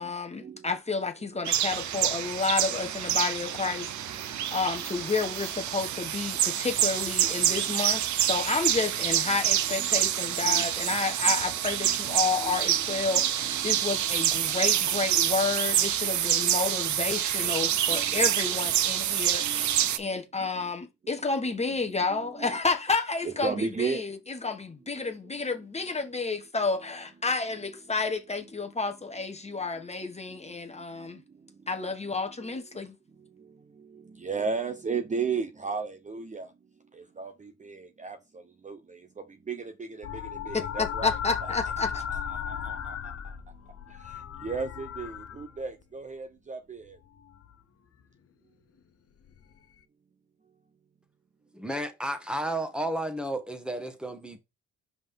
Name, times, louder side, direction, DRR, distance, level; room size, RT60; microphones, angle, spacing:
voice 1, 0.0-31.2 31.7-33.0 40.5-42.0, left 4 dB, 20° left, 1.1 m, -31 dB
sound 1, 1.4-20.0, right 11 dB, 70° right, 0.8 m, -27 dB
voice 2, 11.8-12.2 12.4-12.5 13.9-14.1 14.7-14.8 17.4-17.5 17.9-18.1 18.4-18.5 19.5-19.7 22.1-22.6 23.2-24.0 34.2-36.5 37.2-38.2 38.6-38.8 39.5-40.1 40.5-41.1 41.4-43.1 44.4-46.8, right 5 dB, 25° right, 0.7 m, -34 dB
sound 2, 40.0-45.8 47.0-47.5 49.3-49.4, left 8 dB, 50° left, 0.8 m, -36 dB
voice 3, 51.5-54.4, right 1 dB, 5° right, 1.5 m, -32 dB
5.7 x 5.1 x 3.5 m
cardioid pair, 90°, 30 cm